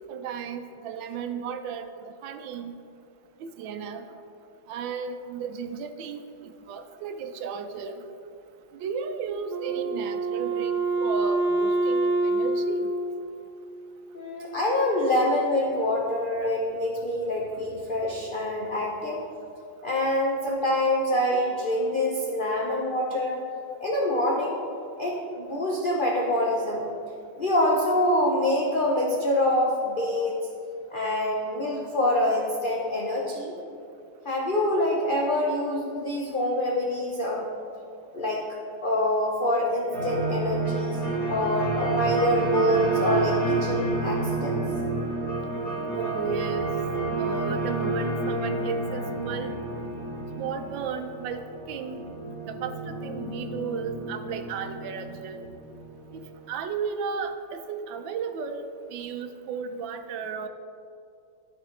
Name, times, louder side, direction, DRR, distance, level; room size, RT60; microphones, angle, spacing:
voice 1, 0.1-2.8 3.4-4.1 4.7-8.1 8.8-12.9 45.9-46.7 47.2-49.5 50.4-51.4 51.7-52.0 52.5-55.5 56.1-56.2 56.5-60.5, right 6 dB, 85° right, 8 dB, 1.3 m, -34 dB
Wind instrument woodwind instrument, 9.5-14.0, right 2 dB, 65° right, 0.7 m, -26 dB
voice 2, 14.1-19.2 19.8-23.4 23.8-24.6 25.0-27.0 27.4-30.5 30.9-33.5 34.2-37.5 38.1-38.4 38.8-41.0 41.3-44.6, left 1 dB, 70° left, -2 dB, 0.5 m, -26 dB
sound 1, 39.9-56.2, right 3 dB, 50° left, 2.2 m, -29 dB
12.5 x 4.8 x 3.1 m, 2.5 s
omnidirectional pair, 2.0 m